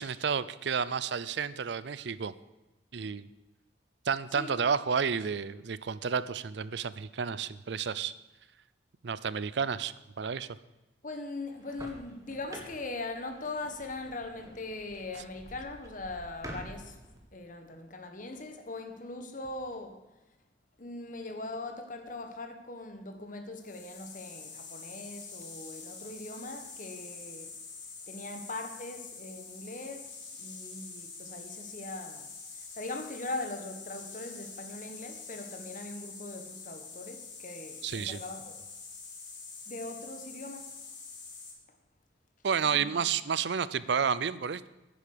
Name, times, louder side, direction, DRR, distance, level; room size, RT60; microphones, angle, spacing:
voice 1, 0.0-2.3 2.9-3.3 4.1-8.1 9.0-10.5 37.8-38.2 42.4-44.7, right 6 dB, 65° right, 0.5 m, -31 dB
voice 2, 11.0-17.0 17.3-20.0 20.8-27.5 28.1-38.6 39.7-40.7 42.6-43.0, left 2 dB, 45° left, 1.5 m, -41 dB
sound 1, 11.5-17.2, right 1 dB, 20° right, 2.0 m, -48 dB
sound 2, 23.6-41.5, left 4 dB, 80° left, 4.2 m, -46 dB
10.5 x 10.0 x 6.7 m
head